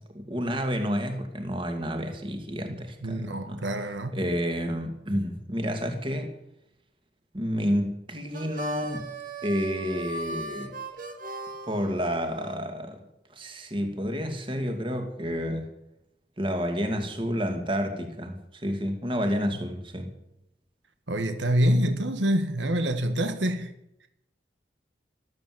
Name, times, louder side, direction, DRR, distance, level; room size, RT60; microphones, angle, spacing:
voice 1, 0.1-3.6 4.1-6.3 7.3-9.1 9.4-10.8 11.7-13.0 13.3-15.7 16.4-20.1, equal, 30° right, 2.4 m, -30 dB
voice 2, 3.0-4.2 21.1-23.7, equal, 85° right, 1.6 m, -26 dB
Harmonica, 8.3-12.6, right 2 dB, 50° right, 2.2 m, -38 dB
14.0 x 13.5 x 7.8 m
head